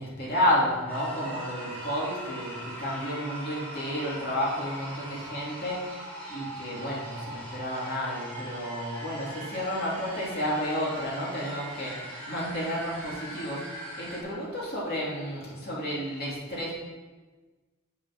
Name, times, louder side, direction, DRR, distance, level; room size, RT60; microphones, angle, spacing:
voice 1, 0.0-6.0 6.3-11.9 12.3-16.8, equal, 45° left, -5 dB, 3.0 m, -31 dB
sound 1, 0.9-14.2, right 1 dB, 5° left, 3.2 m, -41 dB
8.0 x 7.1 x 6.1 m, 1.3 s
head